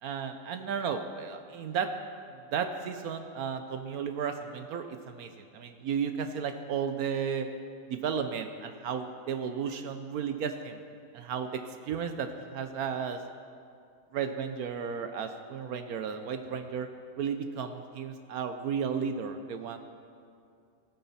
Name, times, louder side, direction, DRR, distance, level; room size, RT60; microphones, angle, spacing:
voice 1, 0.0-1.9 2.5-7.5 7.9-10.8 11.1-13.2 14.1-16.9 17.2-19.8, right 7 dB, 70° right, 8 dB, 0.9 m, -34 dB
16.5 x 9.4 x 4.2 m, 2.4 s
omnidirectional pair, 2.0 m